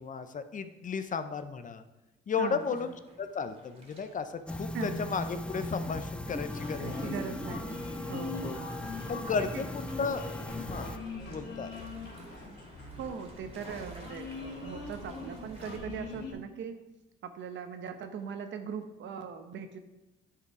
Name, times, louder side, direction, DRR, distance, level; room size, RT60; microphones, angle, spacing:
voice 1, 0.0-1.8 2.3-2.9 3.2-7.1 8.4-8.6 9.1-10.2 10.6-10.9 11.2-11.9, left 5 dB, 40° left, 10 dB, 0.7 m, -34 dB
voice 2, 2.4-2.9 4.7-5.1 6.8-8.9 9.5-9.6 13.0-16.8 17.2-19.8, right 6 dB, 70° right, 8 dB, 1.0 m, -40 dB
sound 1, 2.5-15.8, right 1 dB, 30° right, 2.5 m, -57 dB
sound 2, 4.5-11.0, left 1 dB, 5° left, 0.4 m, -38 dB
sound 3, 6.5-16.3, left 3 dB, 60° left, 3.1 m, -42 dB
10.0 x 4.9 x 4.8 m, 1.0 s
cardioid pair, 90°, 20 cm